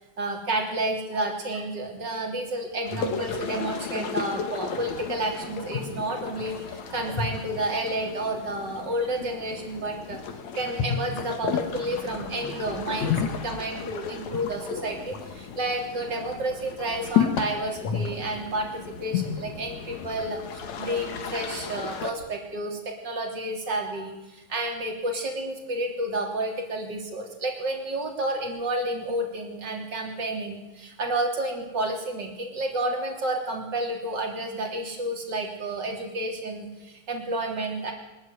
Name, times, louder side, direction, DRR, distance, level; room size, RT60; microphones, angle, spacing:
voice 1, 0.2-10.2 10.5-37.9, right 1 dB, 35° right, 2 dB, 3.9 m, -30 dB
sound 1, 2.9-22.1, left 7 dB, 75° left, 2.9 m, -32 dB
23.0 x 13.5 x 9.4 m, 1.0 s
omnidirectional pair, 3.3 m